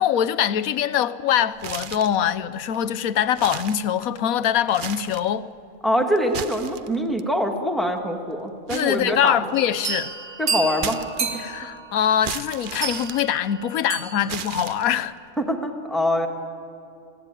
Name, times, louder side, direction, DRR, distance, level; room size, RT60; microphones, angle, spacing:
voice 1, 0.0-5.4 8.7-10.1 11.4-15.1, left 10 dB, 90° left, 1.2 m, -23 dB
sound 1, 1.6-2.2 2.7-2.8 3.3-4.3 4.7-5.3 6.2-7.2 8.7-9.7 10.8-11.6 12.2-13.8 14.3-15.2, right 7 dB, 50° right, 0.7 m, -35 dB
voice 2, 5.8-9.6 10.4-11.3 11.6-11.7 15.4-16.3, equal, ahead, 1.9 m, -24 dB
sound 2, 9.5-14.6, right 5 dB, 75° right, 2.1 m, -31 dB
25.5 x 16.5 x 9.1 m
omnidirectional pair, 1.4 m